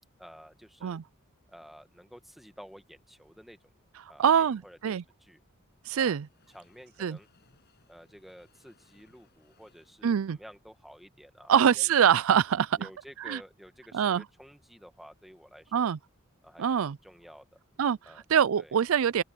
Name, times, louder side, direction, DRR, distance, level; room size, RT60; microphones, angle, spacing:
voice 1, 0.2-1.0 1.5-3.7 4.1-5.4 5.9-6.2 6.5-7.3 7.9-12.0 12.7-15.9 16.4-17.6 18.0-18.2 18.6-18.7, equal, ahead, 1.4 m, -52 dB
voice 2, 4.2-5.0 5.9-6.3 7.0-7.2 10.0-10.4 11.5-12.9 13.3-13.4 13.9-14.2 15.7-16.0 16.6-17.0 17.8-18.0 18.3-19.2, right 8 dB, 70° right, 0.4 m, -24 dB
Train, 4.6-11.9 12.4-12.5 12.7-12.8, left 3 dB, 50° left, 7.1 m, -69 dB
open air
head